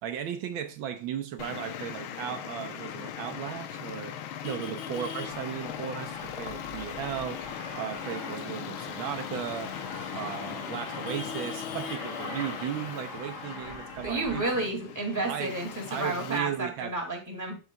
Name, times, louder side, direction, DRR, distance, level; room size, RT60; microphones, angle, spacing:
voice 1, 0.0-4.1 4.4-9.7 10.1-14.6 15.3-15.6 15.9-17.0, right 9 dB, 85° right, 1.6 m, -36 dB
Traffic noise roadway noise, 1.4-16.4, left 9 dB, 90° left, 1.5 m, -39 dB
Aircraft, 5.2-14.6, left 2 dB, 55° left, 2.3 m, -42 dB
voice 2, 14.0-17.6, right 2 dB, 10° right, 1.9 m, -31 dB
12.0 x 5.0 x 2.2 m
omnidirectional pair, 2.2 m